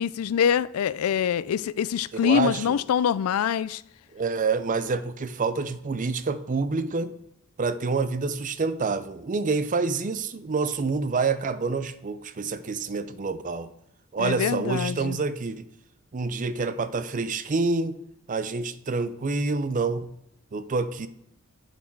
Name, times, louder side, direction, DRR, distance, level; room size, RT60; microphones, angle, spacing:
voice 1, 0.0-3.8 14.2-15.2, left 8 dB, 85° left, 0.3 m, -25 dB
voice 2, 2.2-2.8 4.1-7.1 7.6-13.7 14.1-15.7 16.1-18.0 18.3-20.1 20.5-21.1, right 4 dB, 35° right, 0.5 m, -27 dB
8.4 x 7.2 x 4.6 m
head